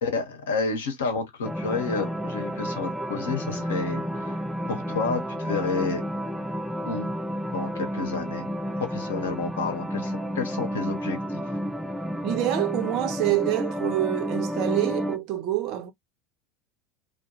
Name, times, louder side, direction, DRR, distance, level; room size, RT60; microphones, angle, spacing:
voice 1, 0.0-4.4 4.7-6.0 6.8-7.1 7.5-8.5 8.9-11.4, left 4 dB, 65° left, 0.9 m, -30 dB
sound 1, 1.4-15.2, equal, ahead, 0.3 m, -31 dB
voice 2, 12.2-15.9, right 14 dB, 50° right, 0.6 m, -26 dB
2.2 x 2.1 x 2.9 m
figure-of-eight pair, 75°, 0 cm